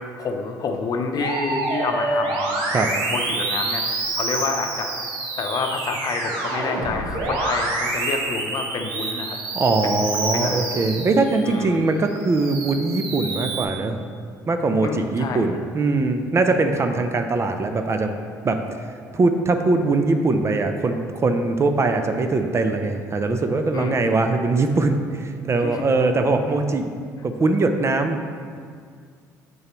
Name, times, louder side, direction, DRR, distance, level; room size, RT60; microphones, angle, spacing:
voice 1, 0.0-2.8 3.1-3.9 4.1-4.9 5.4-9.4 9.8-10.7 11.4-11.8 14.8-15.5 23.7-24.2 25.6-25.9, left 4 dB, 45° left, 4 dB, 0.7 m, -28 dB
Musical instrument, 1.2-11.6 12.1-13.6, right 2 dB, 65° right, 1.1 m, -27 dB
voice 2, 9.5-14.0 14.5-18.1 18.4-18.6 19.1-26.9 27.2-28.2, right 3 dB, 30° right, 6 dB, 0.6 m, -21 dB
7.0 x 6.4 x 3.0 m, 2.1 s
hypercardioid pair, 55°, 9 cm